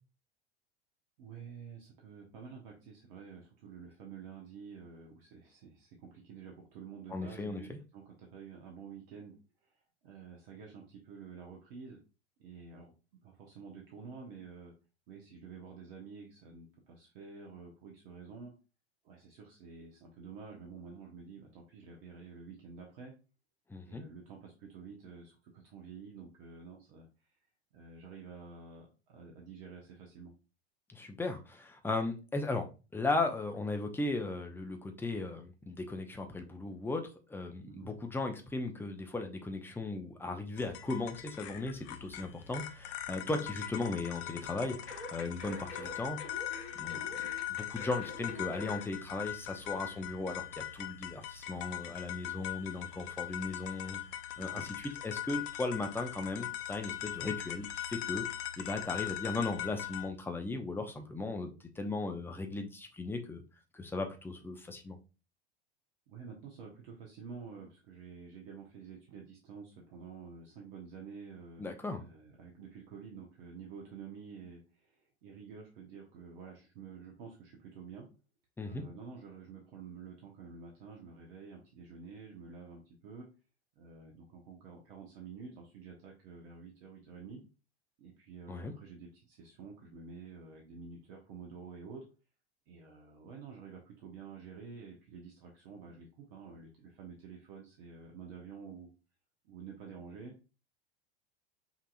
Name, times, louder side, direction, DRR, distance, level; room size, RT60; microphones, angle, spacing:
voice 1, 1.2-12.0 12.4-12.9 13.2-14.7 15.1-18.5 19.0-23.1 23.9-27.4 27.7-30.3 37.6-37.9 43.4-43.5 54.4-54.7 66.1-78.1 78.6-83.3 83.8-87.4 88.0-92.0 92.7-98.9 99.4-100.3, right 5 dB, 55° right, 1.1 m, -49 dB
voice 2, 7.1-7.8 23.7-24.1 30.9-32.7 32.9-46.5 46.7-47.0 47.5-54.0 54.4-58.2 58.6-63.4 63.7-65.0 71.6-72.0 78.6-78.8 88.5-88.7, left 3 dB, 5° left, 0.7 m, -37 dB
sound 1, 40.6-60.1, left 13 dB, 45° left, 0.6 m, -41 dB
sound 2, 44.9-48.9 49.2-49.3, left 2 dB, 75° left, 1.2 m, -46 dB
5.6 x 2.8 x 2.5 m
figure-of-eight pair, 85°, 33 cm